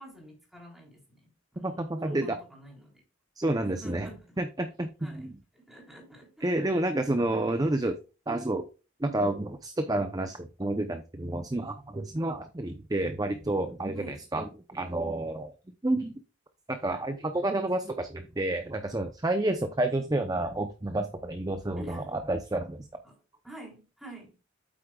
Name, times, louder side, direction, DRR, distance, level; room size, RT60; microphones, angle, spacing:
voice 1, 0.0-3.0 3.6-4.4 5.0-5.3 5.5-6.5 13.9-14.2 21.8-22.1 23.0-23.2 23.4-24.4, right 1 dB, ahead, 3.6 m, -48 dB
voice 2, 1.6-2.4 3.4-4.1 4.4-5.3 6.4-8.0 8.3-8.7 9.0-15.5 15.8-16.1 16.7-22.9, right 1 dB, 20° right, 0.6 m, -30 dB
8.8 x 8.3 x 2.3 m
head